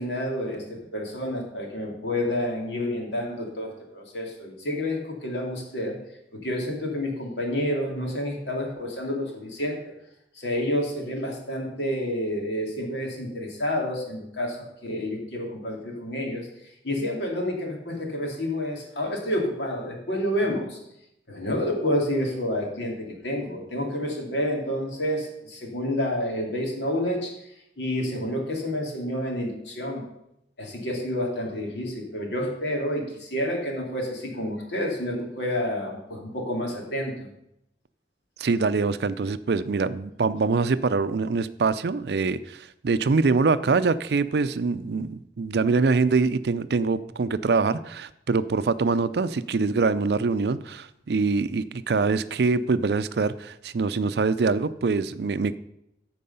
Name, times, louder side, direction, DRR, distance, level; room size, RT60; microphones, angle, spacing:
voice 1, 0.0-6.0 6.3-9.9 10.3-20.8 21.3-27.4 27.8-30.0 30.6-37.3, left 1 dB, 80° left, 0 dB, 2.5 m, -29 dB
voice 2, 38.4-55.6, right 4 dB, 65° right, 14 dB, 0.4 m, -24 dB
14.0 x 4.7 x 5.5 m, 0.81 s
head